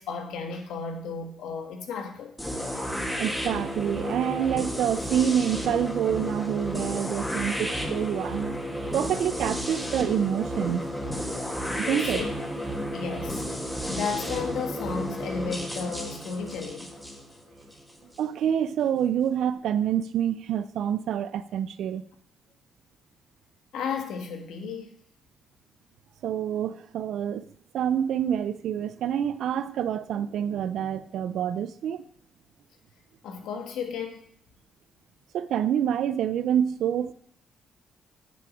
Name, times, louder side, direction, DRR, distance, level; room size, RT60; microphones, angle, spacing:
voice 1, 0.0-2.3 11.8-12.3 12.6-13.4 13.9-16.9 23.7-25.0 33.2-34.2, left 5 dB, 90° left, 1.5 m, -33 dB
sound 1, 2.4-18.2, equal, 10° left, 2.2 m, -32 dB
voice 2, 3.2-8.5 8.9-10.9 11.9-12.2 18.2-22.0 26.2-27.5 27.7-32.0 35.3-37.1, right 9 dB, 80° right, 0.5 m, -27 dB
9.4 x 7.6 x 5.1 m
cardioid pair, 85°, 0 cm